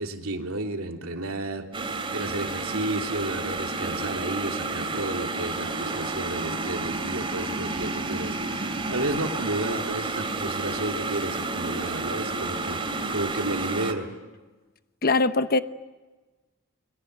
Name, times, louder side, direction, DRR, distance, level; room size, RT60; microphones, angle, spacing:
voice 1, 0.0-12.8 13.1-14.1, right 2 dB, 85° right, 3 dB, 3.0 m, -32 dB
sound 1, 1.7-13.9, right 3 dB, 25° right, 2.8 m, -30 dB
voice 2, 15.0-15.6, left 3 dB, 45° left, 11 dB, 1.0 m, -21 dB
30.0 x 23.5 x 8.1 m, 1.2 s
head